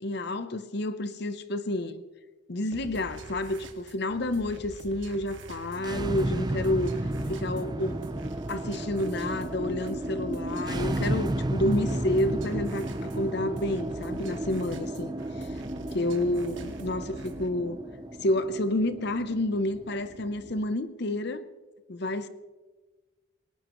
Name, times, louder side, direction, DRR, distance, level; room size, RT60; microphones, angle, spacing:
voice 1, 0.0-2.0 2.5-6.9 7.3-8.0 8.5-15.1 15.4-15.5 15.9-17.8 18.2-21.4 21.9-22.3, left 1 dB, 55° left, 0.8 m, -29 dB
sound 1, 2.7-17.5, right 1 dB, 65° right, 1.8 m, -45 dB
sound 2, 5.8-20.7, right 1 dB, 20° right, 0.5 m, -33 dB
19.5 x 18.5 x 3.1 m
head